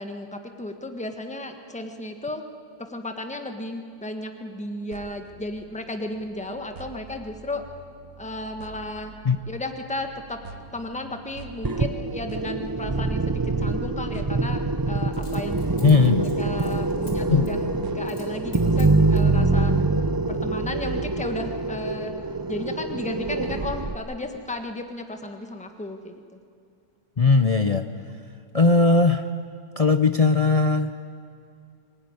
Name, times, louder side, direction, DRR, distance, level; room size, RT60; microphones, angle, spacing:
voice 1, 0.0-2.4 2.8-7.6 8.2-9.1 9.5-10.4 10.7-19.9 20.3-22.1 22.5-26.4, left 1 dB, 5° left, 5 dB, 1.4 m, -34 dB
sound 1, 4.9-19.7, right 4 dB, 65° right, 1.7 m, -46 dB
sound 2, 11.6-24.0, right 3 dB, 35° right, 0.3 m, -25 dB
Coin (dropping), 15.1-17.1 17.5-17.6 18.0-18.3 18.5-19.3 20.0-20.5 20.8-20.9, left 2 dB, 70° left, 4.2 m, -48 dB
voice 2, 15.8-16.3 17.3-17.5 27.2-27.8 28.5-29.3 29.8-30.9, left 4 dB, 45° left, 8 dB, 0.4 m, -18 dB
24.5 x 17.5 x 9.7 m, 2.4 s
omnidirectional pair, 1.7 m